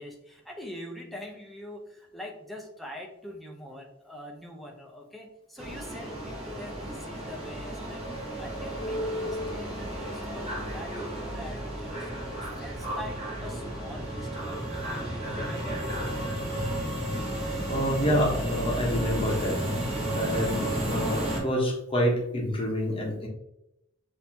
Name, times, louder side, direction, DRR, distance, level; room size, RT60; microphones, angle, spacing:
voice 1, 0.0-16.2, equal, ahead, 0 dB, 0.7 m, -44 dB
sound 1, 5.6-21.4, right 1 dB, 30° right, 1.3 m, -32 dB
voice 2, 17.7-23.3, equal, 25° left, -1 dB, 1.0 m, -28 dB
6.5 x 2.8 x 2.8 m, 0.83 s
head